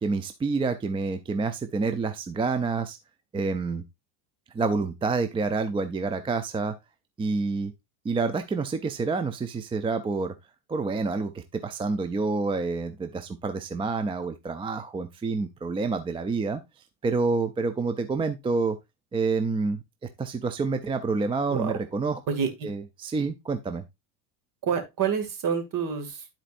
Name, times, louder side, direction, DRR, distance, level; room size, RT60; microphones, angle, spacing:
voice 1, 0.0-3.0 3.3-3.8 4.5-6.7 7.2-7.7 8.0-10.3 10.7-16.6 17.0-18.8 19.1-19.8 20.2-22.2 22.6-23.8, right 4 dB, 10° right, 0.4 m, -28 dB
voice 2, 22.3-22.7 24.6-26.3, right 7 dB, 45° right, 2.3 m, -28 dB
13.0 x 4.4 x 2.5 m
supercardioid pair, 120°, 45 cm